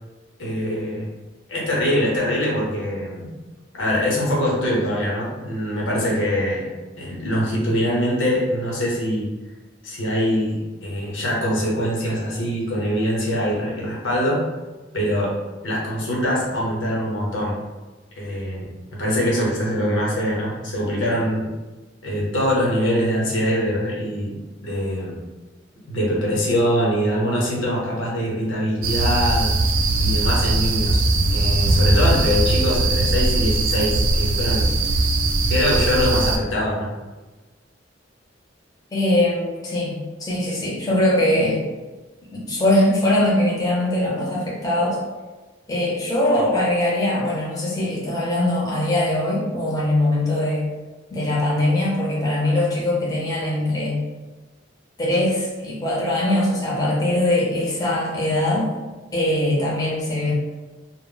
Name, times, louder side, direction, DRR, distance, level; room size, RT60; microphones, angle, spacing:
voice 1, 0.4-1.1 1.5-3.3 3.7-6.7 7.0-9.3 9.8-14.4 14.9-15.3 15.6-17.5 18.2-18.6 18.9-21.5 22.0-24.3 24.6-25.2 25.9-29.5 30.0-31.0 31.3-34.7 35.5-36.9, equal, 85° left, -4 dB, 0.8 m, -23 dB
sound 1, 28.8-36.4, right 2 dB, 90° right, 0.4 m, -20 dB
voice 2, 38.9-41.6 42.3-45.0 45.7-50.7 51.1-54.0 55.0-58.7 59.1-60.3, left 1 dB, 20° left, -6 dB, 0.6 m, -21 dB
2.0 x 2.0 x 3.7 m, 1.2 s
head